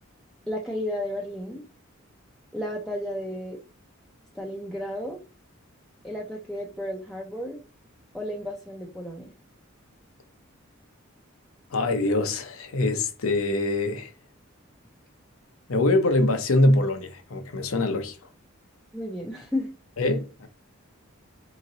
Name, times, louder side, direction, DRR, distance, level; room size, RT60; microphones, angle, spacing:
voice 1, 0.5-1.7 2.5-3.6 4.3-5.2 6.0-7.6 8.1-9.3 18.9-19.7, left 1 dB, ahead, 0.5 m, -33 dB
voice 2, 11.7-14.1 15.7-18.2 20.0-20.5, left 2 dB, 80° left, 0.7 m, -24 dB
3.7 x 3.0 x 3.9 m
head